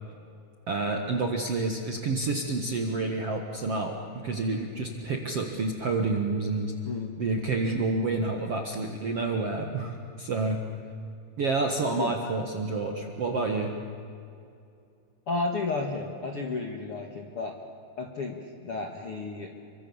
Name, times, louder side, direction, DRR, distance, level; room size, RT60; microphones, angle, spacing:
voice 1, 0.7-6.7 7.2-10.6 11.4-13.7, right 3 dB, 55° right, 2 dB, 1.7 m, -29 dB
voice 2, 15.3-17.5 18.0-19.5, left 3 dB, 50° left, 2 dB, 1.8 m, -32 dB
29.0 x 24.5 x 7.2 m, 2.5 s
omnidirectional pair, 4.9 m